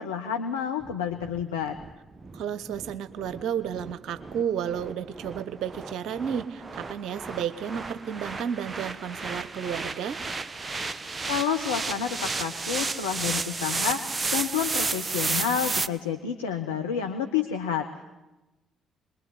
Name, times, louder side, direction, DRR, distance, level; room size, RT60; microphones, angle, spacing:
voice 1, 0.0-1.8 11.3-14.0 14.3-17.9, left 8 dB, 85° left, 4 dB, 1.3 m, -29 dB
sound 1, 0.8-15.9, right 3 dB, 30° right, 1.2 m, -33 dB
voice 2, 2.3-10.2, right 8 dB, 65° right, 13 dB, 1.3 m, -32 dB
25.5 x 22.0 x 9.7 m, 1.0 s
figure-of-eight pair, 45°, 0 cm